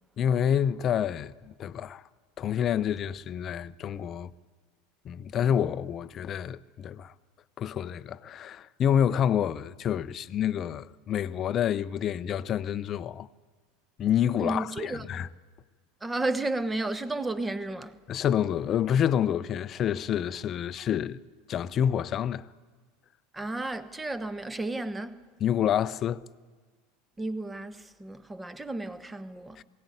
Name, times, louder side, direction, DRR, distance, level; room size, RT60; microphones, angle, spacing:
voice 1, 0.2-2.0 2.4-4.3 5.0-7.1 7.6-13.3 14.0-15.3 18.1-21.2 21.5-22.5 25.4-26.2 29.6-29.7, left 9 dB, 35° left, 0.7 m, -28 dB
voice 2, 14.4-15.1 16.0-18.0 23.3-25.2 27.2-29.6, right 2 dB, 15° right, 1.3 m, -33 dB
21.5 x 17.0 x 9.9 m
figure-of-eight pair, 75°, 0 cm